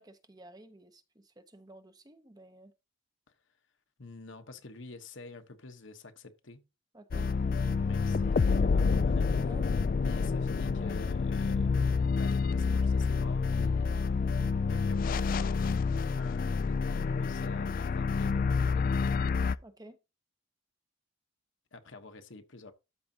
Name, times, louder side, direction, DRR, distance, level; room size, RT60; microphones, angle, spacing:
voice 1, 0.0-2.7 6.9-7.3 9.3-9.6 19.6-20.0, right 1 dB, 20° right, 0.8 m, -52 dB
voice 2, 4.0-6.6 7.8-9.4 10.0-11.8 12.1-13.9 14.7-15.7 16.2-19.3 21.7-22.7, left 3 dB, 65° left, 1.2 m, -48 dB
sound 1, 7.1-19.6, left 4 dB, 45° left, 0.3 m, -28 dB
12.5 x 5.0 x 2.8 m
head